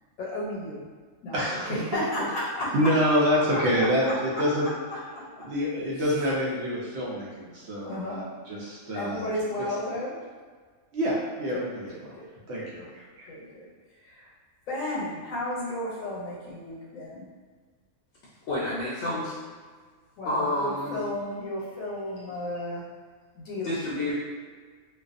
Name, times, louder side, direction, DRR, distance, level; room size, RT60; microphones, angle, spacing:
voice 1, 0.2-0.9 1.2-4.4 5.1-5.5 6.0-6.2 7.8-8.3 8.9-10.2 11.5-12.3 12.6-12.9 13.3-14.3 14.7-17.3 20.2-22.8 23.3-24.1, left 1 dB, 85° left, -4 dB, 1.1 m, -34 dB
voice 2, 1.3-2.0 2.7-4.7 5.4-9.3 10.9-12.1 12.5-13.0, equal, 65° right, -6 dB, 0.8 m, -27 dB
voice 3, 18.5-19.3 20.2-21.0 23.6-24.1, left 1 dB, 65° left, -8 dB, 0.8 m, -29 dB
2.3 x 2.3 x 2.4 m, 1.6 s
omnidirectional pair, 1.4 m